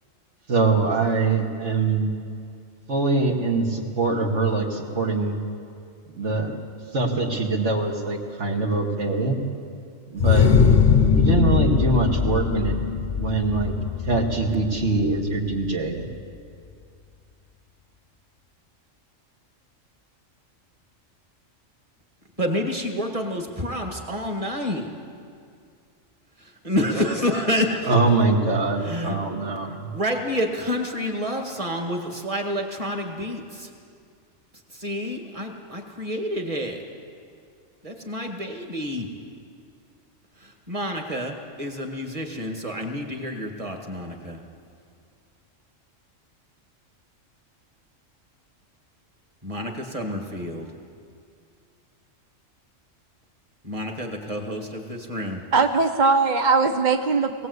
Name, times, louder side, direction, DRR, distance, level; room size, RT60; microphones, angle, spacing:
voice 1, 0.5-2.1 2.9-5.4 6.1-6.5 6.9-9.4 10.1-12.8 13.2-13.7 14.0-16.1 27.8-29.9, right 3 dB, 65° right, 0 dB, 2.4 m, -23 dB
sound 1, 10.2-15.7, left 7 dB, 40° left, 0.8 m, -21 dB
voice 2, 22.4-24.9 26.6-27.9 28.8-29.2 29.7-33.7 34.7-36.8 37.8-39.1 40.4-44.4 49.4-50.7 53.6-55.4, equal, 25° right, 3 dB, 2.1 m, -28 dB
voice 3, 55.5-57.5, right 4 dB, 45° right, 6 dB, 0.8 m, -20 dB
20.0 x 18.0 x 8.2 m, 2.3 s
omnidirectional pair, 1.3 m